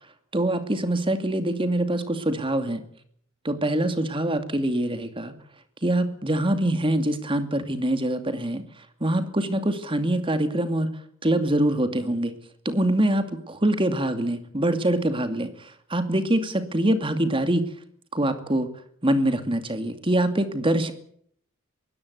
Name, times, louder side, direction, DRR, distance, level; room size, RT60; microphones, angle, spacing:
voice 1, 0.3-2.8 3.4-5.3 5.8-8.7 9.0-10.9 11.2-12.3 12.6-17.6 18.1-18.7 19.0-20.9, right 1 dB, 25° right, 10 dB, 2.4 m, -24 dB
22.5 x 17.0 x 8.2 m, 0.64 s
head